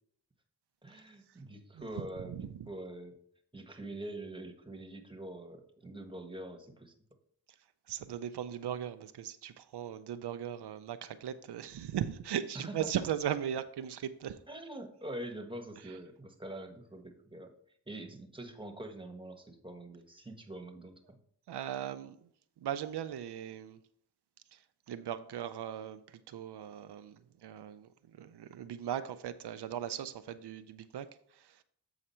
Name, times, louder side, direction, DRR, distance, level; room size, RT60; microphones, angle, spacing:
voice 1, 0.8-3.1 3.5-6.9 12.5-13.0 14.5-17.5 17.9-21.2, right 1 dB, 10° right, 5 dB, 1.3 m, -44 dB
voice 2, 2.3-2.6 7.9-14.4 15.8-16.0 21.5-22.3 22.6-23.8 24.5-31.6, right 9 dB, 80° right, 11 dB, 0.5 m, -38 dB
7.9 x 4.9 x 4.3 m, 0.64 s
cardioid pair, 50°, 40 cm